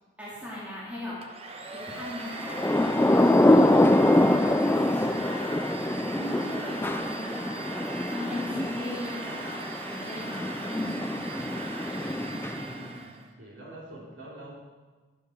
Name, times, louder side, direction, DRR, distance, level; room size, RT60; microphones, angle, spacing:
voice 1, 0.2-1.2 1.7-5.7 6.1-11.5, left 1 dB, 10° right, -8 dB, 2.6 m, -39 dB
Domestic sounds home sounds, 1.2-13.3, right 3 dB, 30° right, 0.9 m, -40 dB
Thunder / Rain, 2.3-12.9, left 1 dB, 10° left, 0.3 m, -25 dB
voice 2, 11.9-14.6, right 1 dB, 90° right, -3 dB, 3.2 m, -45 dB
12.5 x 12.0 x 4.6 m, 1.4 s
head